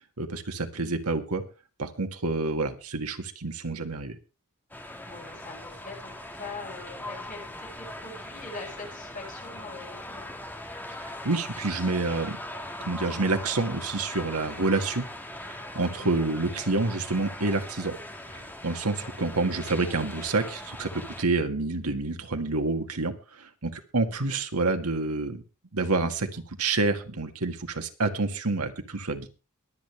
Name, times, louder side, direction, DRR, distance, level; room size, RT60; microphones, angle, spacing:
voice 1, 0.2-1.4 1.8-4.2 11.0-12.4 12.9-15.1 15.4-17.9 18.3-25.4 25.7-29.3, right 3 dB, 90° right, 6 dB, 1.8 m, -28 dB
sound 1, 4.7-21.2, left 1 dB, 10° left, 1.7 m, -40 dB
voice 2, 5.1-10.3 16.0-16.2 19.0-19.1 24.1-24.3, left 3 dB, 40° left, -1 dB, 7.3 m, -43 dB
23.5 x 8.6 x 3.3 m, 0.32 s
head